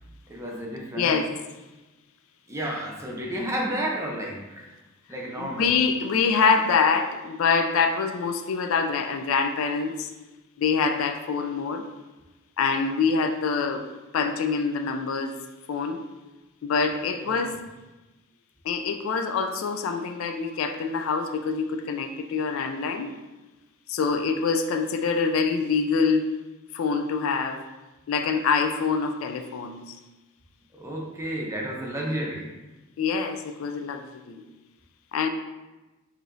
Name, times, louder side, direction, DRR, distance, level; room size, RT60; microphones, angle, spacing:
voice 1, 0.3-1.1 2.5-4.7 5.1-5.7 6.4-6.6 17.2-17.5 30.7-32.5, right 1 dB, 15° right, -2 dB, 0.6 m, -32 dB
voice 2, 0.9-1.3 5.4-10.1 10.6-11.9 12.6-13.8 14.1-15.4 15.7-16.0 16.6-17.6 18.6-23.1 23.9-26.3 26.7-27.6 28.1-30.0 33.0-34.4 35.1-35.3, left 5 dB, 70° left, 6 dB, 0.3 m, -25 dB
4.8 x 2.7 x 2.6 m, 1.1 s
head